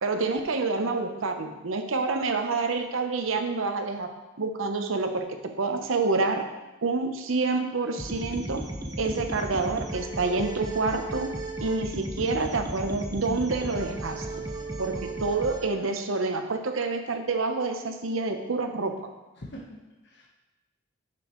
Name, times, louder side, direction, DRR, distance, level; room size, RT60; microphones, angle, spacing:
voice 1, 0.0-4.1 4.4-6.5 6.8-8.7 9.0-11.3 11.6-14.3 14.8-18.9, right 3 dB, 85° right, 6 dB, 0.8 m, -28 dB
sound 1, 8.0-15.7, right 1 dB, 20° right, 0.7 m, -35 dB
voice 2, 14.3-14.7 19.4-20.3, equal, 60° left, -2 dB, 1.2 m, -45 dB
9.6 x 6.1 x 3.0 m, 1.1 s
head